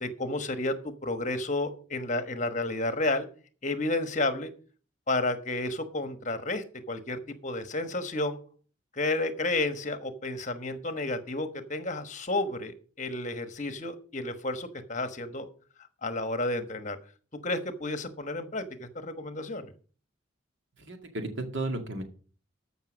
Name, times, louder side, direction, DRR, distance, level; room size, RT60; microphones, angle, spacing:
voice 1, 0.0-0.8 1.0-3.3 3.6-4.5 5.1-8.4 8.9-15.5 16.0-17.0 17.4-19.7, left 2 dB, 40° left, 9 dB, 1.1 m, -31 dB
voice 2, 20.8-22.0, right 2 dB, 70° right, 5 dB, 2.1 m, -34 dB
14.0 x 5.8 x 6.2 m, 0.42 s
head